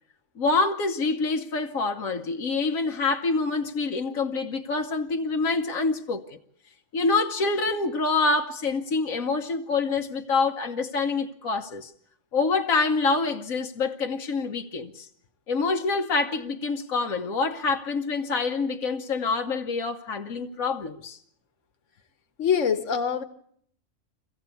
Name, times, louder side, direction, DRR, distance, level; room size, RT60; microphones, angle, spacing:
voice 1, 0.4-6.2 6.9-11.9 12.3-15.1 15.5-21.2, left 3 dB, 85° left, 1.5 m, -26 dB
voice 2, 22.4-23.2, left 7 dB, 65° left, 1.6 m, -24 dB
24.5 x 15.5 x 8.4 m
omnidirectional pair, 1.4 m